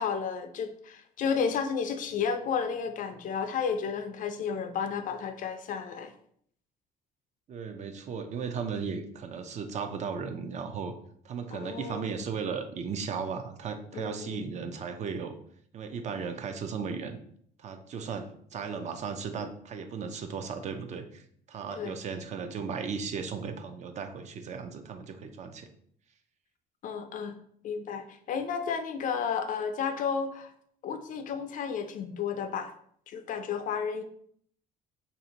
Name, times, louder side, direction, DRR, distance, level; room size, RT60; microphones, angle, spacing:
voice 1, 0.0-6.1 11.5-12.2 13.9-14.5 21.7-22.0 26.8-27.3 27.6-30.5 30.8-32.7 33.1-34.0, left 6 dB, 50° left, 8 dB, 0.4 m, -32 dB
voice 2, 7.5-10.9 11.2-15.4 15.7-17.2 17.6-25.7, right 6 dB, 45° right, 7 dB, 0.4 m, -36 dB
3.2 x 2.6 x 2.8 m, 0.64 s
cardioid pair, 110°, 17 cm